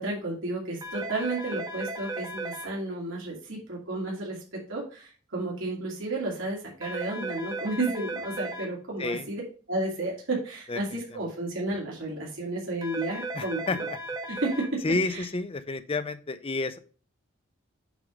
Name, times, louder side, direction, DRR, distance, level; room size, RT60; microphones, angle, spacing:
voice 1, 0.0-9.4 9.7-13.8 14.3-14.8 15.1-15.2, right 2 dB, 70° right, -3 dB, 2.5 m, -32 dB
sound 1, 0.8-2.6 6.8-8.6 12.8-14.6, right 2 dB, 20° right, 1.3 m, -35 dB
voice 2, 10.7-11.2 13.3-13.8 14.8-16.8, left 3 dB, 25° left, 12 dB, 0.5 m, -30 dB
8.1 x 3.7 x 4.9 m, 0.39 s
head